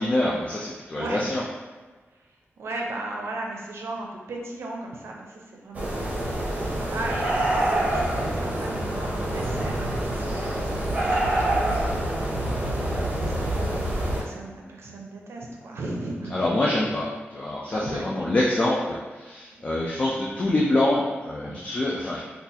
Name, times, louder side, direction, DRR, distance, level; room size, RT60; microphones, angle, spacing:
voice 1, 0.0-1.4 16.3-17.1 17.3-22.2, left 1 dB, 30° left, -4 dB, 0.4 m, -25 dB
voice 2, 0.9-1.3 2.6-12.3 12.8-16.5 17.7-18.4 21.5-21.6, right 2 dB, 75° right, 0 dB, 0.5 m, -37 dB
sound 1, 5.7-14.2, right 1 dB, 35° right, 0.6 m, -26 dB
3.9 x 2.4 x 2.7 m, 1.3 s
wide cardioid pair, 180°, 4 cm